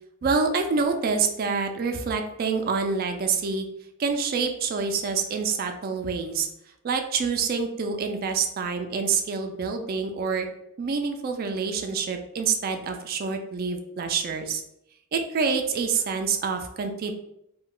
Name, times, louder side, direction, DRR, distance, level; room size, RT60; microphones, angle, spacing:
voice 1, 0.2-3.7 4.0-6.5 6.8-10.5 10.8-14.6 15.1-17.1, right 5 dB, 40° right, 5 dB, 0.3 m, -27 dB
2.2 x 2.0 x 3.7 m, 0.81 s
head